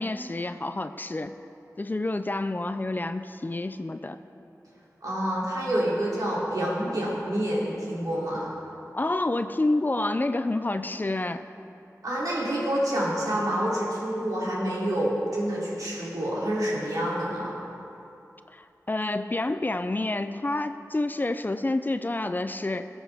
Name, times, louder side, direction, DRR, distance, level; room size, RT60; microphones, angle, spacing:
voice 1, 0.0-1.3 1.8-4.2 8.9-11.4 18.5-22.9, left 2 dB, 30° left, 10 dB, 0.4 m, -28 dB
voice 2, 5.0-8.5 12.0-17.6, right 1 dB, 75° right, -6 dB, 2.9 m, -28 dB
18.5 x 7.1 x 3.5 m, 2.8 s
wide cardioid pair, 70°, 6 cm